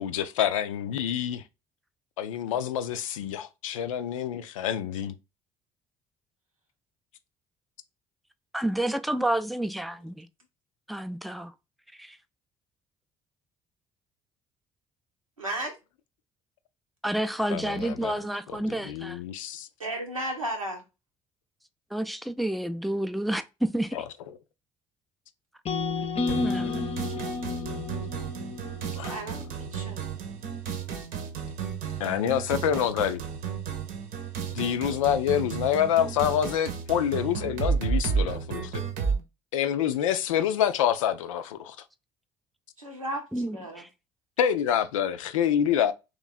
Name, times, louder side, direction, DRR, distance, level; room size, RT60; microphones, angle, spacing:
voice 1, 0.0-1.4 2.2-5.1 17.5-18.1 18.5-19.7 23.9-24.0 29.0-29.1 32.0-33.2 34.5-38.8 39.5-41.8 44.4-45.9, left 9 dB, 75° left, 0.4 m, -27 dB
voice 2, 8.5-10.3 10.9-11.5 12.0-12.2 17.0-19.2 21.9-24.0 26.3-26.8 43.3-43.9, right 1 dB, ahead, 0.4 m, -30 dB
voice 3, 15.4-15.8 19.8-20.8 29.1-30.1 42.8-43.2 43.5-43.8, right 1 dB, 90° right, 0.9 m, -34 dB
sound 1, 25.7-29.8, left 4 dB, 35° left, 0.7 m, -32 dB
sound 2, 26.3-39.2, right 6 dB, 60° right, 0.8 m, -32 dB
3.2 x 3.1 x 3.9 m
figure-of-eight pair, 50°, 17 cm